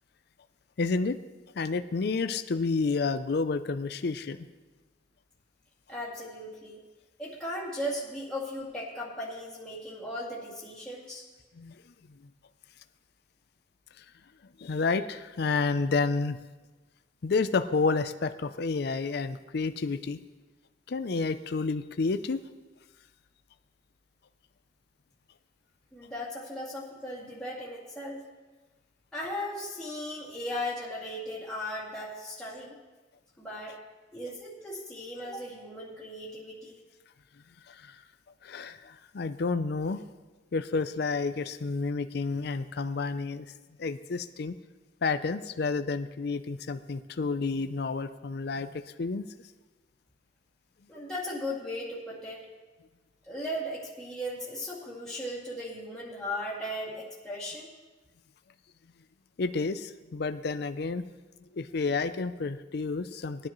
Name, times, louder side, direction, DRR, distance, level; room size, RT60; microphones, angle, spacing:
voice 1, 0.8-1.2 1.6-4.4 11.6-11.8 14.6-16.4 17.2-20.2 20.9-22.4 37.7-38.0 38.4-40.0 40.5-43.5 43.8-44.5 45.0-48.7 49.0-49.3 59.4-61.1 61.6-63.5, left 4 dB, 60° left, 10 dB, 0.5 m, -30 dB
voice 2, 5.9-6.8 7.2-11.2 25.9-28.2 29.1-32.7 33.4-33.8 34.1-36.8 50.9-52.4 53.2-57.7, left 1 dB, 5° left, -8 dB, 2.3 m, -37 dB
19.0 x 10.0 x 3.1 m, 1.2 s
head